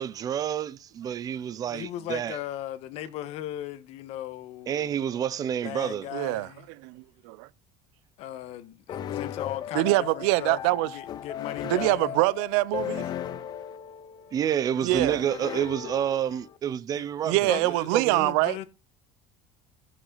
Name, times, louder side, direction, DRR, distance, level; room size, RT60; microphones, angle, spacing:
voice 1, 0.0-2.4 4.7-6.1 14.3-17.6 17.9-18.3, right 9 dB, 30° right, 0.6 m, -29 dB
voice 2, 1.7-5.0 5.6-6.7 8.2-12.2 14.7-15.2 16.9-18.6, left 13 dB, 55° left, 1.3 m, -38 dB
voice 3, 6.1-6.5 6.8-7.5 9.7-10.9 11.6-13.1 14.8-15.2 17.3-18.6, right 20 dB, 90° right, 0.6 m, -24 dB
sound 1, 8.9-16.6, left 10 dB, 30° left, 0.6 m, -36 dB
15.5 x 6.3 x 4.0 m
cardioid pair, 165°, 13 cm